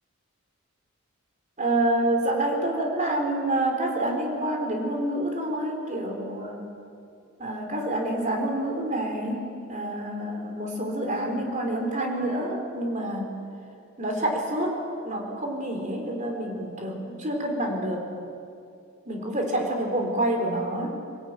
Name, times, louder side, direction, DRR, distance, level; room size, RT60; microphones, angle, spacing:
voice 1, 1.6-6.7 7.4-9.4 9.7-13.3 14.0-18.1 19.1-20.9, right 1 dB, 35° right, 2 dB, 3.9 m, -27 dB
24.0 x 18.0 x 9.2 m, 2.5 s
head